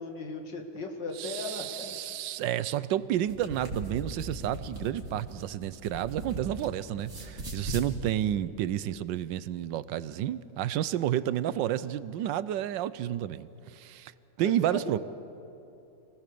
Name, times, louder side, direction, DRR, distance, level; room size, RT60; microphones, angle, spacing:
voice 1, 0.0-2.1 14.6-15.0, left 2 dB, 75° left, 2.7 m, -37 dB
voice 2, 1.2-14.1 14.4-15.0, right 11 dB, 80° right, 1.3 m, -31 dB
sound 1, 3.1-6.7 7.0-7.9, right 1 dB, 50° right, 3.1 m, -39 dB
27.0 x 19.0 x 6.8 m
omnidirectional pair, 2.0 m